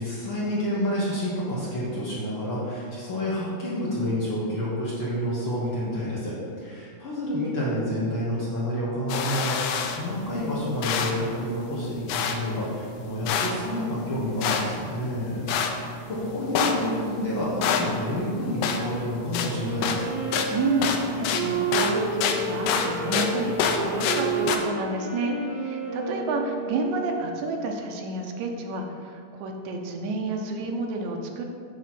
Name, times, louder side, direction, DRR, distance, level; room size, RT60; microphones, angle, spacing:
voice 1, 0.0-20.1, equal, 55° left, -7 dB, 1.5 m, -29 dB
sound 1, 9.1-24.6, left 5 dB, 80° left, 1.5 m, -29 dB
Wind instrument woodwind instrument, 19.5-27.2, right 3 dB, 40° right, 2.5 m, -31 dB
voice 2, 20.5-31.4, right 3 dB, 80° right, 2 dB, 2.1 m, -30 dB
8.6 x 3.0 x 5.9 m, 2.2 s
omnidirectional pair, 3.4 m